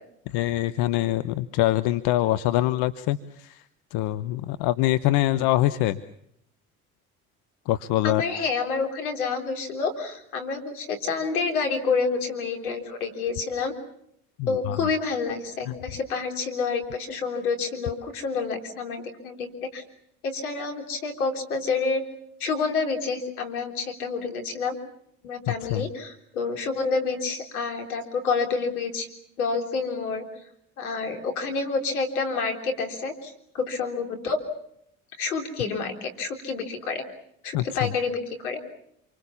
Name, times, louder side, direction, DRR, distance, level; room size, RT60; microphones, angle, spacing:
voice 1, 0.3-3.6 3.9-6.0 7.7-8.2 14.7-14.8 15.7-15.8 25.7-25.8 37.5-37.9, left 15 dB, 65° left, 13 dB, 1.1 m, -24 dB
voice 2, 8.0-13.7 14.5-19.8 20.2-22.0 22.4-24.8 25.2-29.1 29.4-30.3 30.8-34.4 35.2-37.0 37.4-38.6, left 4 dB, 85° left, 5 dB, 3.7 m, -28 dB
28.0 x 24.5 x 7.2 m, 0.73 s
hypercardioid pair, 60°, 42 cm